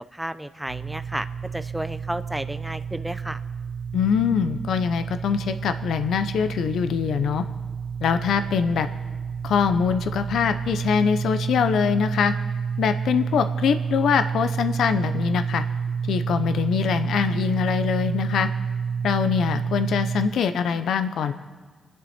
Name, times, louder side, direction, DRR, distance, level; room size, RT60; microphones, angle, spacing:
voice 1, 0.1-1.3 1.5-3.4, right 1 dB, 5° right, 10 dB, 0.7 m, -32 dB
sound 1, 0.7-20.3, right 6 dB, 90° right, 0.9 m, -29 dB
voice 2, 3.9-7.4 8.0-8.9 9.4-12.3 12.8-15.6 16.1-18.5 19.0-21.3, left 7 dB, 85° left, 10 dB, 0.8 m, -23 dB
27.0 x 10.5 x 4.3 m, 1.5 s
cardioid pair, 80°, 0 cm